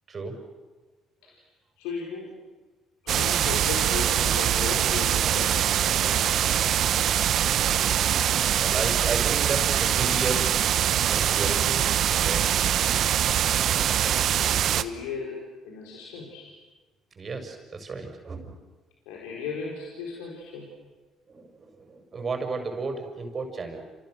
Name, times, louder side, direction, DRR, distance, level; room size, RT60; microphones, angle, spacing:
voice 1, 1.8-2.4 3.0-5.7 6.0-6.4 14.4-16.6 19.1-20.7, left 5 dB, 75° left, -2 dB, 4.3 m, -36 dB
sound 1, 3.1-14.8, right 10 dB, 60° right, 1.0 m, -23 dB
voice 2, 8.6-10.4 11.1-11.8 12.2-12.6 17.2-18.5 21.3-23.8, right 3 dB, 40° right, 4 dB, 6.0 m, -33 dB
29.5 x 28.5 x 6.5 m, 1.3 s
hypercardioid pair, 55°, 0 cm